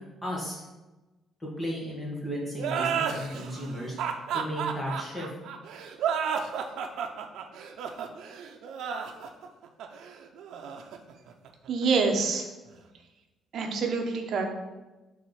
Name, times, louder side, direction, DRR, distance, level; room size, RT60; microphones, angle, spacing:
voice 1, 0.2-0.6 1.4-4.0 4.3-5.3, equal, 10° left, -4 dB, 1.8 m, -34 dB
sound 1, 2.6-11.8, right 7 dB, 75° right, 0.6 m, -32 dB
voice 2, 11.7-12.4 13.5-14.5, right 4 dB, 55° right, 3 dB, 0.9 m, -26 dB
5.9 x 3.6 x 5.9 m, 1.1 s
cardioid pair, 165°, 0 cm